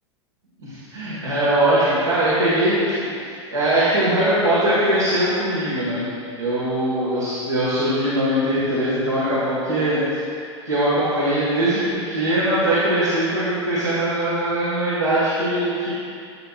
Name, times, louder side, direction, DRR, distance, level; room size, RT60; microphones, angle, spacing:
voice 1, 0.6-3.1 3.5-6.1 6.4-15.9, right 1 dB, 80° right, -10 dB, 1.6 m, -21 dB
11.5 x 5.7 x 2.4 m, 2.3 s
figure-of-eight pair, 90°, 16 cm